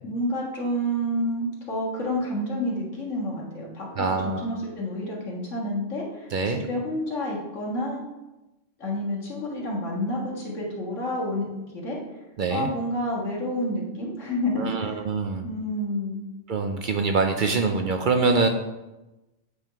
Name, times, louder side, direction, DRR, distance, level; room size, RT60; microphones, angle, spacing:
voice 1, 0.0-3.9 4.2-8.0 8.8-11.5 11.7-12.0 12.5-15.0 15.4-16.3, left 1 dB, 80° left, -3 dB, 2.0 m, -29 dB
voice 2, 4.0-4.5 6.3-6.6 12.4-12.7 14.6-15.5 16.5-18.5, right 4 dB, 60° right, 5 dB, 0.5 m, -24 dB
8.1 x 3.6 x 4.5 m, 1.0 s
omnidirectional pair, 1.3 m